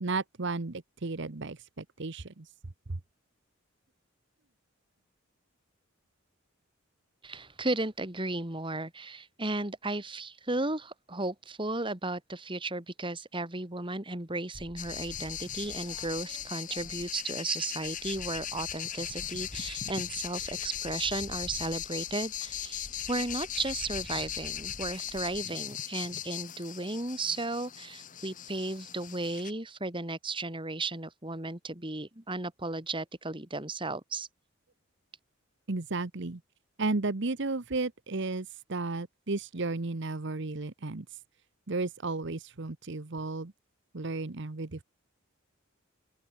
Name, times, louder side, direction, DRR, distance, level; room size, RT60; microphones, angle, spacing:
voice 1, 0.0-2.5 2.9-3.0 35.7-36.4 36.8-41.2 41.7-43.5 43.9-44.8, right 3 dB, 60° right, 1.0 m, -33 dB
voice 2, 7.2-34.3, right 2 dB, 25° right, 3.0 m, -35 dB
sound 1, 14.5-17.4 17.7-25.4, left 1 dB, 20° left, 1.7 m, -50 dB
sound 2, 14.8-29.5, left 10 dB, 40° left, 1.3 m, -38 dB
open air
head